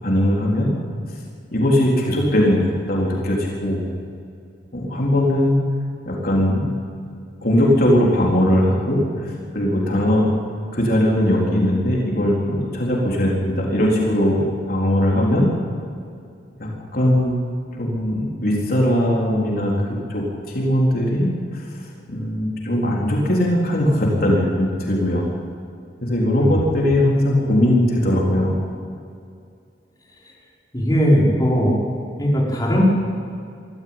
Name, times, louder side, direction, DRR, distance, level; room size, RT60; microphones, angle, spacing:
voice 1, 0.0-0.7 1.5-3.8 4.7-5.6 6.1-6.8 7.4-10.3 10.7-14.4 14.7-15.5 16.6-17.3 17.7-19.7 20.1-21.6 22.1-25.3 26.0-28.5, left 1 dB, 55° left, -3 dB, 4.0 m, -19 dB
voice 2, 30.7-31.8 32.2-32.8, equal, 20° left, -4 dB, 5.1 m, -18 dB
23.5 x 14.5 x 9.0 m, 2.3 s
head